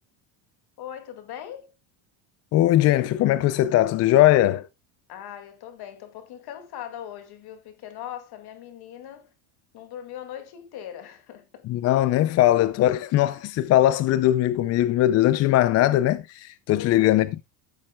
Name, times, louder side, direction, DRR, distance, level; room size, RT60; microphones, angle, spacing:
voice 1, 0.8-1.7 5.1-9.3 9.7-11.6 16.7-17.1, left 10 dB, 50° left, 2.1 m, -40 dB
voice 2, 2.5-4.7 11.6-17.4, left 14 dB, 35° left, 0.4 m, -20 dB
14.5 x 7.4 x 2.2 m
cardioid pair, 140°, 48 cm